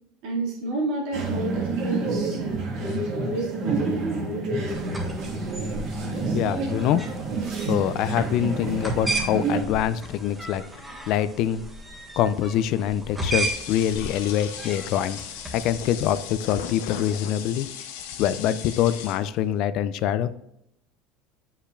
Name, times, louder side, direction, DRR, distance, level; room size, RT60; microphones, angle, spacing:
voice 1, 0.2-5.0, right 1 dB, 75° right, -3 dB, 2.3 m, -30 dB
sound 1, 1.1-9.6, right 3 dB, 55° right, 1.7 m, -29 dB
sound 2, 4.7-16.0, right 2 dB, 10° right, 1.4 m, -35 dB
voice 2, 6.3-7.0 7.7-10.6 11.1-11.6 12.2-15.2 15.5-17.7 18.2-20.3, left 10 dB, 60° left, 15 dB, 0.4 m, -24 dB
sound 3, 13.4-19.5, left 8 dB, 90° left, 0.7 m, -37 dB
8.2 x 5.5 x 2.5 m, 0.79 s
supercardioid pair, 130°, 0 cm